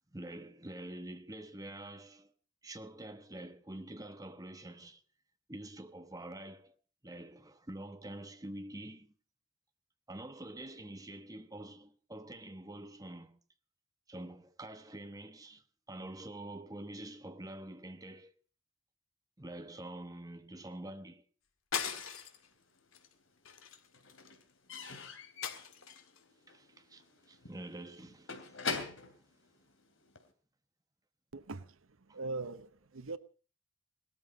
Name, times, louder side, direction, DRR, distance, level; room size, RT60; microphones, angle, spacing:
voice 1, 0.1-2.3 2.6-5.0 5.5-6.7 7.0-9.1 10.1-13.4 14.1-18.3 19.4-21.2 26.5-28.8 29.1-29.2 32.1-32.2, right 1 dB, 15° right, 1.1 m, -46 dB
sound 1, 21.7-22.5 22.9-23.1 23.4-24.4 25.4-26.2, left 7 dB, 90° left, 2.0 m, -39 dB
Slam / Squeak / Wood, 22.4-23.3 23.5-30.3, left 5 dB, 75° left, 2.9 m, -44 dB
voice 2, 31.3-31.8 32.1-33.2, right 3 dB, 85° right, 0.9 m, -41 dB
18.0 x 13.0 x 5.3 m
head